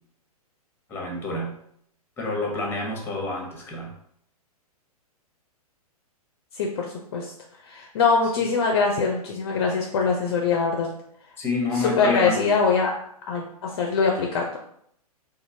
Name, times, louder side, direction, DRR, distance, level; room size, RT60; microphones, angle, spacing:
voice 1, 0.9-1.5 2.2-3.9 11.4-12.4, left 2 dB, 10° left, -1 dB, 1.0 m, -28 dB
voice 2, 6.6-7.3 7.7-10.9 11.7-12.9 13.3-14.6, left 5 dB, 40° left, 0 dB, 0.5 m, -23 dB
4.2 x 2.5 x 2.7 m, 0.69 s
figure-of-eight pair, 115°, 20 cm